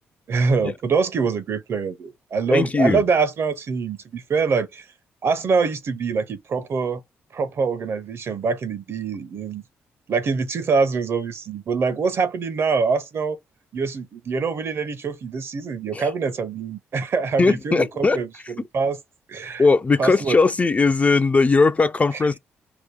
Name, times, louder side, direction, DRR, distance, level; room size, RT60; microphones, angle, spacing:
voice 1, 0.3-4.8 5.2-7.0 7.3-9.6 10.1-13.4 13.7-18.3 18.6-19.0 19.3-19.6 20.0-20.4, right 5 dB, 55° right, 0.8 m, -24 dB
voice 2, 2.5-3.0 15.9-16.1 17.4-18.2 19.6-22.4, left 4 dB, 30° left, 0.4 m, -19 dB
2.9 x 2.1 x 3.4 m
supercardioid pair, 65°, 5 cm